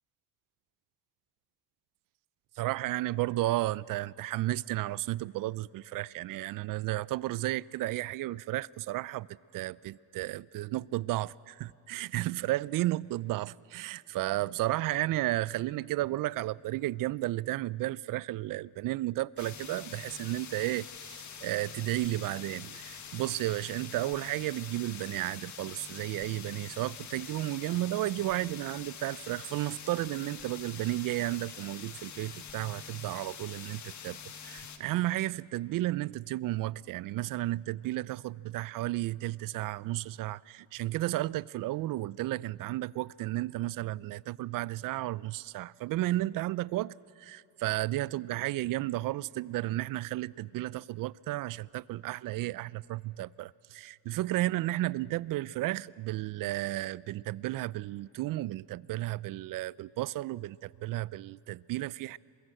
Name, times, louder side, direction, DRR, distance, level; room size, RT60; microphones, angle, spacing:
voice 1, 2.6-9.3 9.5-62.2, right 17 dB, 55° right, 0.4 m, -33 dB
sound 1, 19.4-34.8, left 7 dB, 45° left, 1.7 m, -45 dB
23.0 x 22.5 x 7.8 m
cardioid pair, 115°, 42 cm